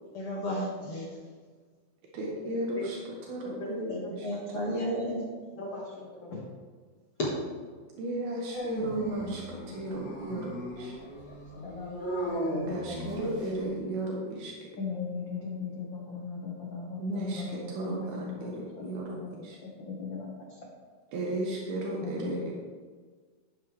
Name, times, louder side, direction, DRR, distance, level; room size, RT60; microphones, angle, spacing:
voice 1, 0.1-1.1 3.9-5.2, equal, 50° left, -3 dB, 2.0 m, -33 dB
voice 2, 2.1-4.3 4.6-4.8 8.0-10.9 12.7-14.7 17.0-19.6 21.1-22.5, right 1 dB, 80° right, -2 dB, 3.2 m, -35 dB
voice 3, 5.5-6.4 10.6-11.2 11.5-12.0 12.2-13.3 14.8-20.7 22.0-22.5, left 4 dB, 80° left, -2 dB, 1.0 m, -39 dB
Dog, 8.5-13.6, right 1 dB, 25° left, 0.9 m, -36 dB
12.0 x 9.0 x 3.4 m, 1.5 s
omnidirectional pair, 4.3 m